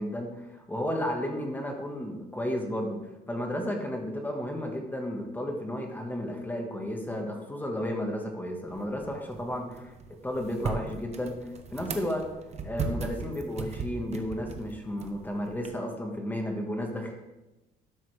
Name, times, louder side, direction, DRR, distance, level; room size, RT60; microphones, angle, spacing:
voice 1, 0.0-9.9 10.2-12.3 12.6-17.1, left 1 dB, 10° left, 2 dB, 1.4 m, -33 dB
sound 1, 8.7-15.7, right 4 dB, 40° right, 1.0 m, -38 dB
12.0 x 6.7 x 3.3 m, 1.0 s
cardioid pair, 110°, 17 cm